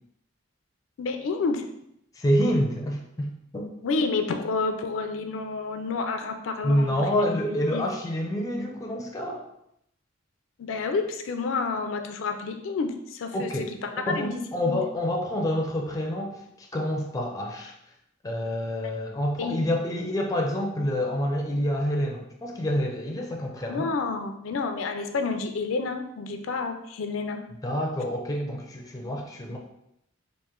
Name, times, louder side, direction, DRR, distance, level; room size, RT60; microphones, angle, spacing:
voice 1, 1.0-1.6 3.8-7.1 7.7-7.8 10.6-13.5 13.8-14.4 14.7-14.8 19.4-19.6 23.7-27.4, left 4 dB, 80° left, 6 dB, 0.4 m, -29 dB
voice 2, 2.2-3.7 6.6-9.4 13.3-13.7 14.1-17.7 18.2-23.9 27.6-29.6, equal, 15° left, 1 dB, 0.4 m, -27 dB
3.0 x 2.5 x 3.6 m, 0.77 s
head